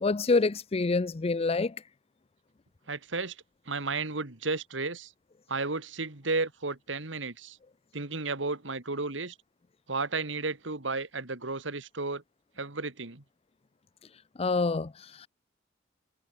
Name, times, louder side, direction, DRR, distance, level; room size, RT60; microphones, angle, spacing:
voice 1, 0.0-1.8 14.4-15.3, left 3 dB, 35° left, 0.5 m, -27 dB
voice 2, 2.9-3.4 3.7-5.1 5.5-7.6 7.9-9.3 9.9-12.2 12.6-13.2, right 3 dB, 85° right, 2.4 m, -33 dB
head